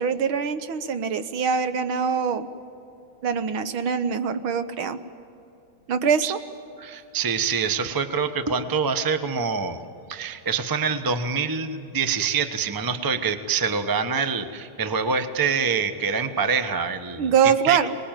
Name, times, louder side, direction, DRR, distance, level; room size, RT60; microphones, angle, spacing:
voice 1, 0.0-2.5 3.2-5.0 5.9-6.4 17.2-18.0, right 6 dB, 75° right, 10 dB, 1.8 m, -23 dB
voice 2, 6.8-9.8 10.1-17.8, right 5 dB, 25° right, 9 dB, 0.4 m, -25 dB
25.0 x 20.5 x 9.1 m, 2.8 s
omnidirectional pair, 2.3 m